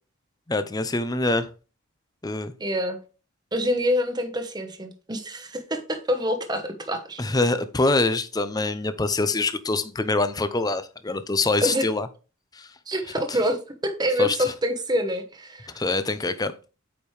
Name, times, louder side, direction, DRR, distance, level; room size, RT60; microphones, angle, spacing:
voice 1, 0.5-1.5 2.2-2.5 7.2-12.1 12.6-12.7 13.3-13.4 14.2-14.5 15.7-16.5, left 2 dB, 20° left, 0.6 m, -25 dB
voice 2, 2.6-3.0 3.5-7.2 11.6-11.9 12.9-15.7, equal, 20° right, 1.1 m, -26 dB
8.7 x 5.3 x 3.2 m
head